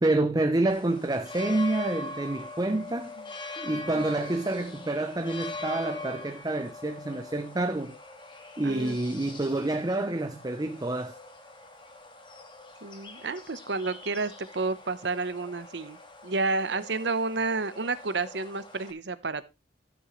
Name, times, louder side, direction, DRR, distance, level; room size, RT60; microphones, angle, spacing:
voice 1, 0.0-3.1 3.6-8.0 8.6-11.1, right 2 dB, 20° right, 0.6 m, -28 dB
sound 1, 0.7-18.9, left 3 dB, 25° left, 1.9 m, -43 dB
voice 2, 3.7-4.0 8.6-9.0 12.8-16.0 16.2-19.4, right 3 dB, 70° right, 0.9 m, -30 dB
13.0 x 7.6 x 3.2 m
head